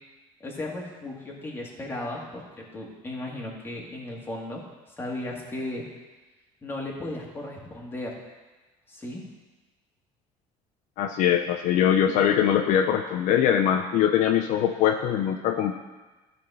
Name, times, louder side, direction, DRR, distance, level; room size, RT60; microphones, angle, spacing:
voice 1, 0.4-4.6 5.0-5.8 6.6-8.2 8.9-9.2, left 1 dB, 15° left, -2 dB, 1.9 m, -35 dB
voice 2, 11.0-15.7, left 9 dB, 65° left, 6 dB, 0.6 m, -22 dB
12.5 x 4.3 x 5.5 m, 1.2 s
cardioid pair, 130°, 14 cm